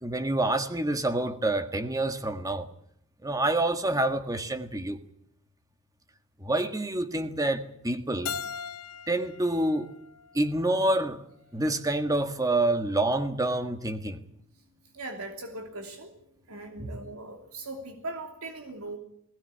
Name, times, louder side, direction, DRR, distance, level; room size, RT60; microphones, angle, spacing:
voice 1, 0.0-2.7 3.2-5.0 6.4-8.4 9.1-9.9 10.3-11.2 11.5-14.2 16.8-17.0, right 1 dB, 15° right, 1.6 m, -27 dB
Keyboard (musical), 8.2-11.1, left 6 dB, 85° left, 1.0 m, -40 dB
voice 2, 14.9-16.1 16.5-19.0, right 2 dB, 75° right, 2.9 m, -39 dB
20.5 x 17.5 x 9.7 m
head